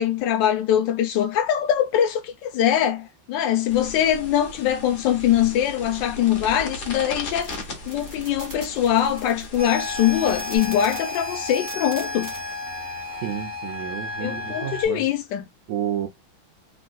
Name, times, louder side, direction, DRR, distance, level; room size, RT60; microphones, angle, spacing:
voice 1, 0.0-12.3 14.2-15.4, left 10 dB, 70° left, 1.3 m, -22 dB
sound 1, 3.7-10.6, left 1 dB, 50° left, 1.1 m, -38 dB
sound 2, 7.3-12.4, right 1 dB, 30° right, 0.3 m, -42 dB
sound 3, 9.6-14.9, left 2 dB, 30° left, 0.6 m, -32 dB
voice 2, 13.2-15.1 15.7-16.1, right 11 dB, 75° right, 0.8 m, -30 dB
3.6 x 2.3 x 2.3 m
omnidirectional pair, 2.1 m